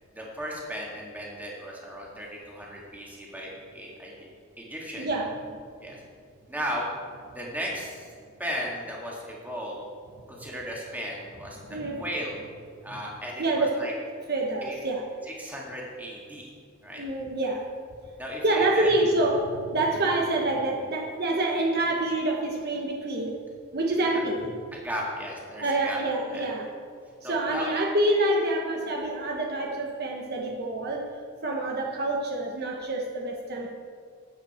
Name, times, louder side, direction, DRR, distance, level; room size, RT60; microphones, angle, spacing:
voice 1, 0.2-4.2 4.6-5.1 5.8-6.0 6.5-6.9 7.3-8.1 8.4-9.9 10.3-12.4 12.8-13.9 14.6-14.7 15.3-16.5 16.8-17.0 18.2-18.9 24.7-26.0 26.3-26.4 27.2-27.7, equal, 10° right, -3 dB, 2.2 m, -36 dB
voice 2, 5.0-5.3 11.7-12.0 12.9-13.0 13.4-13.7 14.3-15.0 17.0-17.6 18.4-23.3 23.7-24.5 25.6-26.7 27.2-33.7, right 2 dB, 50° right, 0 dB, 1.1 m, -27 dB
13.0 x 8.9 x 4.4 m, 2.1 s
head